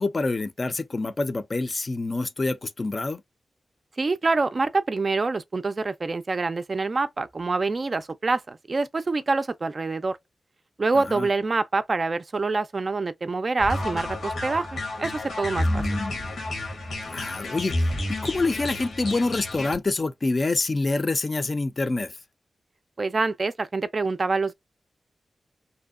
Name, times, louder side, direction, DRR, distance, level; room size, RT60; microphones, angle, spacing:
voice 1, 0.0-3.2 11.0-11.3 15.6-16.2 17.1-22.2, left 3 dB, 45° left, 0.4 m, -27 dB
voice 2, 4.0-10.2 10.8-15.8 23.0-24.5, right 3 dB, 50° right, 0.3 m, -26 dB
sound 1, 13.6-19.7, left 1 dB, 85° left, 1.1 m, -30 dB
2.6 x 2.1 x 2.3 m
cardioid pair, 60°, 0 cm